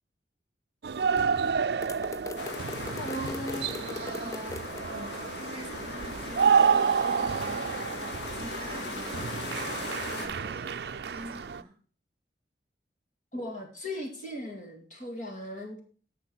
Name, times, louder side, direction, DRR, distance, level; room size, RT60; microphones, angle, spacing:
sound 1, 0.8-11.6, right 6 dB, 65° right, 0.4 m, -29 dB
sound 2, 1.8-4.8, left 3 dB, 20° left, 0.4 m, -40 dB
sound 3, 2.4-10.3, left 2 dB, 80° left, 2.1 m, -38 dB
voice 1, 2.9-3.7 13.3-15.8, left 1 dB, 45° left, 2.2 m, -37 dB
voice 2, 4.0-4.6 4.9-10.8 11.1-11.7, right 1 dB, 30° right, 2.8 m, -46 dB
10.5 x 6.6 x 4.5 m
head